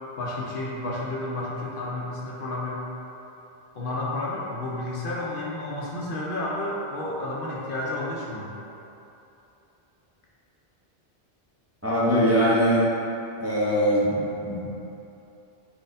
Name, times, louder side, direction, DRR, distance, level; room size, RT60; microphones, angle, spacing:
voice 1, 0.2-2.8 3.8-8.5, left 2 dB, 60° left, -4 dB, 0.8 m, -31 dB
voice 2, 11.8-12.8 13.4-14.7, equal, 15° right, -9 dB, 0.6 m, -22 dB
4.7 x 4.1 x 2.6 m, 2.9 s
omnidirectional pair, 1.1 m